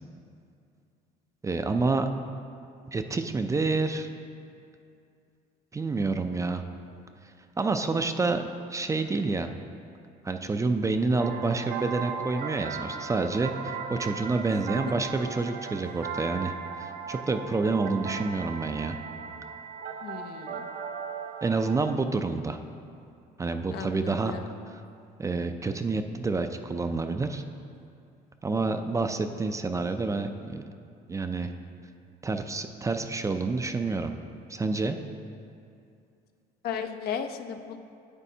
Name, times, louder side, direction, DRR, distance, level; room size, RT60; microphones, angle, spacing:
voice 1, 1.4-2.1 2.9-4.1 5.7-6.6 7.6-8.4 8.7-9.5 10.2-13.5 13.9-19.0 21.4-22.6 23.4-24.4 24.7-24.8 25.2-27.4 28.4-30.6 31.1-31.5 32.2-34.1 34.5-35.0, right 3 dB, 20° right, 7 dB, 0.3 m, -28 dB
sound 1, 11.2-21.9, right 6 dB, 65° right, 0.6 m, -37 dB
voice 2, 14.5-14.8 20.0-20.7 23.7-24.5 36.6-37.8, left 7 dB, 70° left, 7 dB, 0.5 m, -35 dB
9.7 x 8.2 x 2.7 m, 2.4 s
cardioid pair, 110°, 17 cm